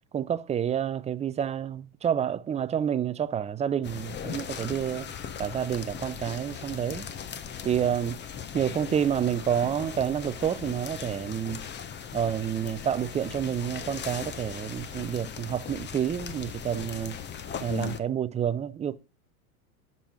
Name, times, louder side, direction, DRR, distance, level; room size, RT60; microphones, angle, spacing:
voice 1, 0.1-5.1 5.4-7.1 7.6-8.2 8.5-11.7 12.1-17.2 17.6-19.0, right 9 dB, 15° right, 0.5 m, -29 dB
sound 1, 3.8-18.0, left 8 dB, 25° left, 1.0 m, -39 dB
10.0 x 5.5 x 7.1 m
hypercardioid pair, 100°, 44 cm